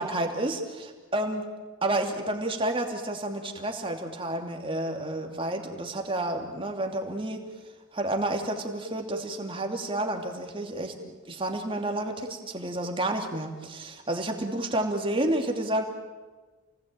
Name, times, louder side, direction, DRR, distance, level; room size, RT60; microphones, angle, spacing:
voice 1, 0.0-1.5 1.8-7.4 7.9-10.9 11.3-15.8, right 1 dB, 25° right, 3 dB, 2.7 m, -30 dB
29.0 x 19.0 x 9.0 m, 1.3 s
head